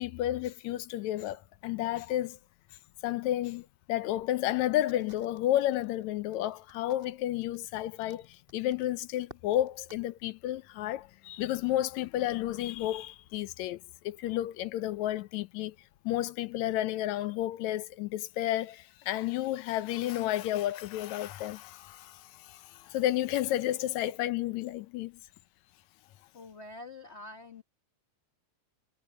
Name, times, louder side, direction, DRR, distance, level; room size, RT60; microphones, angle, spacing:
voice 1, 0.0-2.4 3.0-13.8 14.0-15.8 16.1-25.2, left 13 dB, 80° left, 1.9 m, -31 dB
Crackle, 4.9-10.0, right 1 dB, 15° right, 5.5 m, -57 dB
voice 2, 26.3-27.6, left 2 dB, 55° left, 0.7 m, -46 dB
omnidirectional pair, 3.4 m